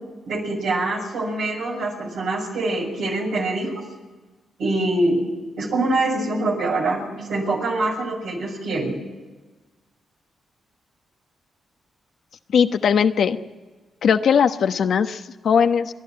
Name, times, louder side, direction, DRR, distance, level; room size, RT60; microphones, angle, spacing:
voice 1, 0.3-3.8 4.6-5.2 5.6-9.0, right 2 dB, 75° right, 0 dB, 7.0 m, -24 dB
voice 2, 12.5-13.4 14.0-15.9, left 7 dB, 70° left, 8 dB, 1.1 m, -19 dB
30.0 x 11.5 x 8.8 m, 1.3 s
supercardioid pair, 55°, 0 cm